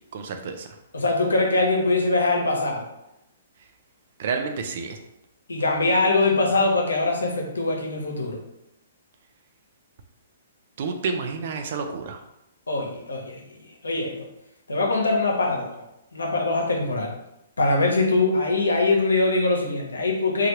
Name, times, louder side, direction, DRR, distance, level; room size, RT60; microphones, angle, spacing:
voice 1, 0.1-0.7 4.2-5.0 10.8-12.2, right 5 dB, 55° right, 5 dB, 0.5 m, -29 dB
voice 2, 0.9-2.8 5.5-8.4 12.7-13.4 13.8-14.3 14.7-15.8 16.1-17.1 17.6-20.5, left 2 dB, 90° left, 0 dB, 0.8 m, -22 dB
3.2 x 2.3 x 2.9 m, 0.87 s
hypercardioid pair, 130°, 0 cm